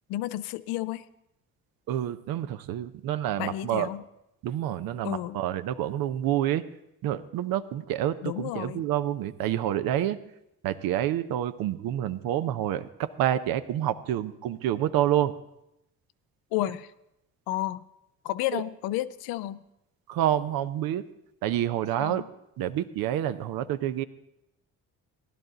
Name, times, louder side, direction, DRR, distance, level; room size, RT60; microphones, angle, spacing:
voice 1, 0.1-1.0 3.4-4.0 5.0-5.4 8.2-8.8 16.5-16.9 17.5-17.8 18.2-19.6 22.0-22.2, left 15 dB, 85° left, 16 dB, 0.5 m, -31 dB
voice 2, 1.9-3.9 4.4-6.6 7.0-10.2 10.6-15.3 18.5-18.6 20.1-21.1 21.4-22.2 22.6-24.0, right 12 dB, 75° right, 11 dB, 0.7 m, -28 dB
15.5 x 11.0 x 3.9 m, 0.83 s
supercardioid pair, 55°, 35 cm